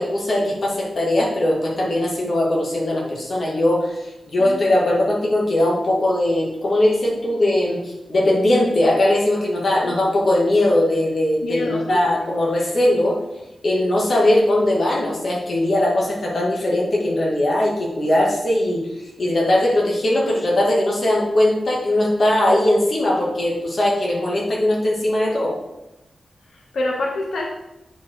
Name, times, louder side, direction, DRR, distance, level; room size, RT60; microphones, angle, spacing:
voice 1, 0.0-4.0 4.3-13.2 13.6-18.8 19.2-25.6, left 1 dB, 45° left, -3 dB, 2.3 m, -20 dB
voice 2, 11.4-12.3 26.5-27.5, left 2 dB, 90° left, 0 dB, 1.0 m, -27 dB
9.3 x 5.1 x 4.7 m, 0.94 s
wide cardioid pair, 170°, 0 cm